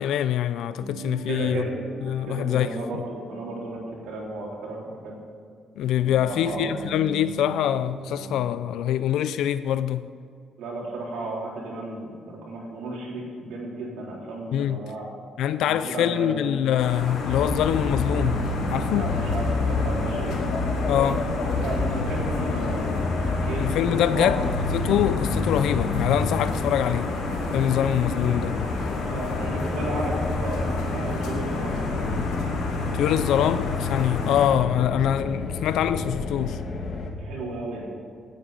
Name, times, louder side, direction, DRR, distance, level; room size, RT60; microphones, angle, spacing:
voice 1, 0.0-1.6 2.0-3.0 5.8-10.1 14.5-14.9 15.4-18.4 18.7-19.1 20.9-21.3 23.6-27.1 27.5-28.6 32.9-36.6, left 10 dB, 75° left, 0.4 m, -24 dB
sound 1, 0.8-4.3 5.9-8.5, right 5 dB, 50° right, 2.3 m, -39 dB
voice 2, 1.3-1.8 2.3-5.2 6.2-6.7 10.6-15.1 15.6-16.5 18.9-20.4 21.6-24.3 26.5-26.6 29.1-32.3 34.1-34.3 37.2-37.9, right 2 dB, 80° right, 3.9 m, -34 dB
sound 2, 16.8-34.5, left 2 dB, 90° left, 3.2 m, -32 dB
sound 3, 17.3-37.1, left 3 dB, 40° left, 1.5 m, -29 dB
18.0 x 9.1 x 5.2 m
cardioid pair, 175°, 0 cm